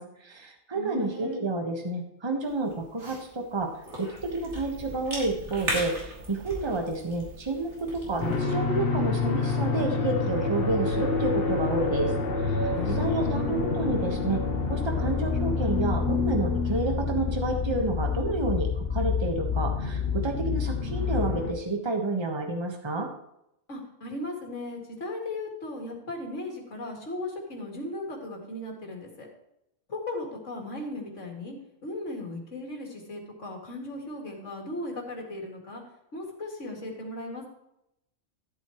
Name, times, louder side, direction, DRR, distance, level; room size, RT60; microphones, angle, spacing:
voice 1, 0.0-3.7 4.0-12.1 12.4-14.4 14.7-23.1, right 2 dB, 20° right, 3 dB, 1.3 m, -30 dB
voice 2, 0.7-1.4 12.7-13.7 23.7-29.3 29.9-31.6 31.8-35.8 36.1-37.5, left 2 dB, 80° left, -1 dB, 2.8 m, -37 dB
Cough / Chewing mastication, 2.4-8.4, right 1 dB, 65° right, 3.2 m, -38 dB
sound 1, 8.2-21.5, left 4 dB, 50° left, 1.2 m, -27 dB
13.5 x 8.2 x 3.1 m, 0.82 s
omnidirectional pair, 1.3 m